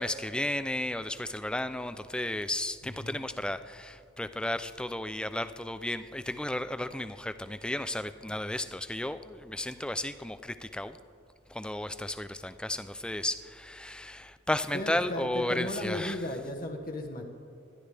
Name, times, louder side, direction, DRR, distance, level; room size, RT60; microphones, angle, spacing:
voice 1, 0.0-11.0 11.5-16.2, left 1 dB, 5° left, 12 dB, 0.3 m, -33 dB
voice 2, 2.8-3.2 14.7-17.2, left 1 dB, 45° left, 1 dB, 1.1 m, -35 dB
20.0 x 12.0 x 3.4 m, 2.4 s
head